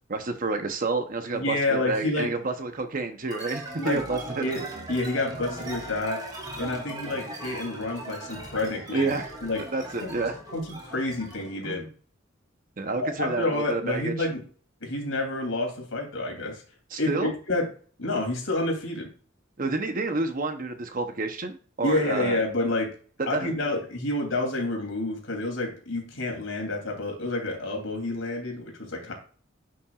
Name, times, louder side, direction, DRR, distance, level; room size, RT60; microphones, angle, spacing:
voice 1, 0.1-4.5 8.9-9.3 9.7-10.4 11.6-11.9 12.8-14.3 16.9-17.3 19.6-22.4 23.3-23.5, right 3 dB, 45° right, 7 dB, 0.8 m, -29 dB
voice 2, 1.3-2.3 3.8-4.0 4.4-6.2 6.6-9.1 9.4-9.6 10.0-10.1 10.5-11.9 13.0-14.4 14.8-16.6 17.0-17.7 18.0-19.1 21.8-22.9 23.3-29.1, left 2 dB, 90° left, 2 dB, 2.8 m, -29 dB
sound 1, 3.3-11.6, right 2 dB, 20° right, 2.6 m, -39 dB
10.5 x 5.7 x 2.4 m, 0.42 s
head